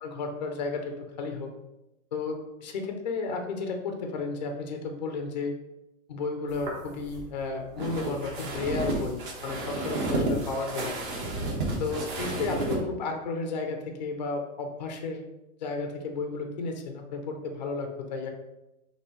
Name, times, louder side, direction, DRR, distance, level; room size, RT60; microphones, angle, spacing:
voice 1, 0.0-1.5 2.1-5.6 6.1-10.9 11.8-15.2 15.6-18.3, left 4 dB, 35° left, 3 dB, 0.4 m, -33 dB
sound 1, 6.5-12.8, right 2 dB, 40° right, 1.0 m, -32 dB
6.2 x 2.7 x 2.9 m, 0.95 s
supercardioid pair, 175°, 42 cm